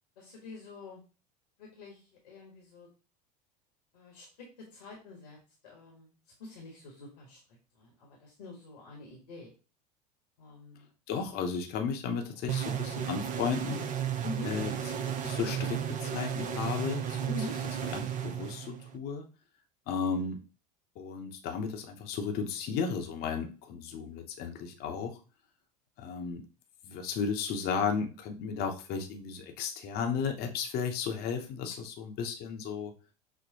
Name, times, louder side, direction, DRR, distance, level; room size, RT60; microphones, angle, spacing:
voice 1, 0.2-1.0 1.6-2.9 3.9-5.4 5.6-6.1 6.4-7.4 7.7-9.5 10.4-10.9 14.2-14.5 17.3-17.6, left 2 dB, 75° left, -1 dB, 1.3 m, -45 dB
voice 2, 11.1-13.8 14.4-14.7 15.2-17.2 17.8-19.3 19.9-20.4 21.0-25.2 26.0-26.4 26.8-32.9, left 6 dB, 50° left, 4 dB, 0.9 m, -34 dB
sound 1, 12.5-19.0, right 9 dB, 40° right, 0.6 m, -34 dB
6.3 x 2.1 x 2.8 m, 0.34 s
hypercardioid pair, 80°, 21 cm